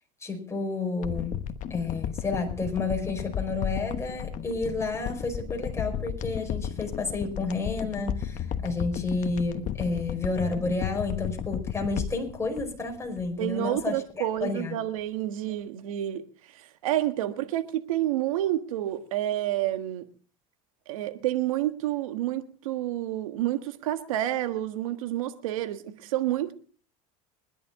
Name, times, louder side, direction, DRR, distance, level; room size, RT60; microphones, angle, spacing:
voice 1, 0.2-1.4 1.7-14.0 14.4-14.8, left 3 dB, 15° left, 5.0 m, -30 dB
sound 1, 1.0-13.5 13.8-13.9, left 9 dB, 45° left, 1.2 m, -34 dB
voice 2, 13.4-20.1 20.9-26.5, right 13 dB, 85° right, 1.5 m, -29 dB
23.5 x 11.0 x 3.7 m
hypercardioid pair, 90°, 17 cm